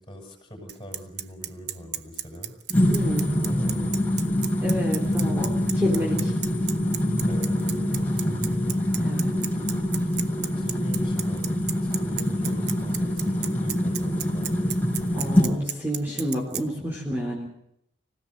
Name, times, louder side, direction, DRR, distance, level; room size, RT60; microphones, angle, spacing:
voice 1, 0.0-2.5 3.2-4.4 5.0-5.7 7.3-8.7 10.0-11.5 11.8-14.7, equal, 25° left, 0 dB, 6.4 m, -42 dB
Bicycle, 0.7-16.6, right 12 dB, 60° right, 1.0 m, -32 dB
sound 1, 2.7-15.5, left 1 dB, 10° left, 5.4 m, -25 dB
voice 2, 2.9-3.4 4.6-5.5 5.7-6.3 8.7-9.3 15.1-17.5, equal, 10° right, -4 dB, 3.8 m, -29 dB
25.5 x 16.5 x 8.1 m, 0.76 s
head